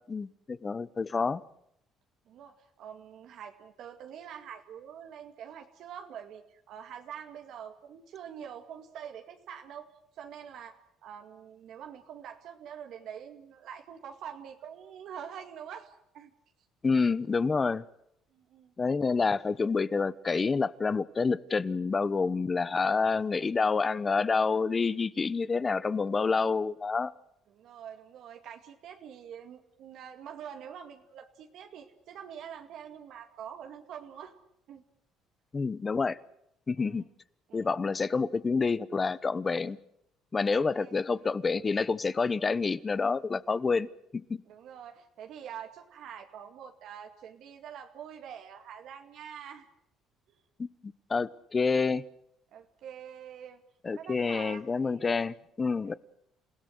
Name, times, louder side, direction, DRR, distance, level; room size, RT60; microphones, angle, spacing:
voice 1, 0.0-1.4 16.8-17.8 18.8-27.1 35.5-36.2 36.7-37.0 37.5-39.8 40.3-43.9 44.1-44.4 50.6-52.0 53.8-55.9, left 4 dB, 25° left, 0.9 m, -28 dB
voice 2, 2.3-9.9 10.1-16.3 18.3-18.7 27.5-34.4 34.7-34.8 36.8-37.1 37.5-37.8 40.4-41.3 44.5-49.7 52.5-53.6 53.9-55.0 55.8-56.0, right 8 dB, 65° right, 2.2 m, -45 dB
28.5 x 17.0 x 8.0 m
cardioid pair, 120°, 0 cm